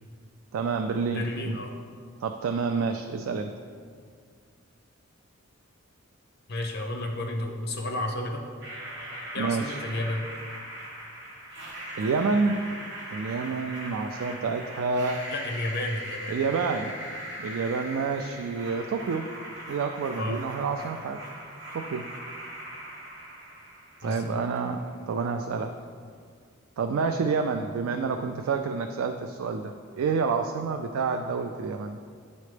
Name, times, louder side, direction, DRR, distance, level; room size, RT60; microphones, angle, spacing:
voice 1, 0.5-1.6 2.2-3.5 9.4-9.8 12.0-12.6 13.1-15.3 16.3-16.9 17.4-19.3 19.7-21.2 21.7-22.0 24.0-24.8 25.1-25.7 26.8-32.0, right 4 dB, 75° right, 5 dB, 0.3 m, -28 dB
voice 2, 1.1-1.7 6.5-8.4 9.3-10.3 15.3-16.4 20.1-20.4 24.0-24.4, left 1 dB, 50° left, 2 dB, 0.8 m, -31 dB
sound 1, 8.6-24.5, right 1 dB, 55° right, 1.5 m, -40 dB
9.5 x 4.2 x 3.3 m, 2.1 s
head